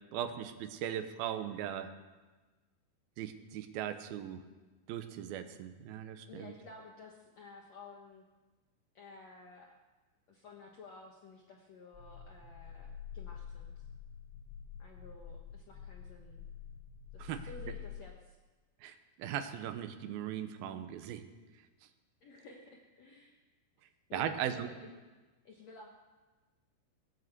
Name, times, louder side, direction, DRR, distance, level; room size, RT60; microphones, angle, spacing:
voice 1, 0.1-1.9 3.2-4.4 4.9-6.5 17.2-17.5 18.8-21.2 24.1-24.7, right 10 dB, 75° right, 9 dB, 2.4 m, -38 dB
voice 2, 6.3-8.2 8.9-9.7 10.3-13.9 14.8-16.4 17.1-18.4 22.2-23.4 24.1-25.0 25.4-25.9, left 3 dB, 80° left, 0 dB, 1.5 m, -53 dB
sound 1, 11.9-18.0, left 8 dB, 25° left, 2.9 m, -47 dB
18.0 x 9.5 x 8.0 m, 1.3 s
omnidirectional pair, 5.2 m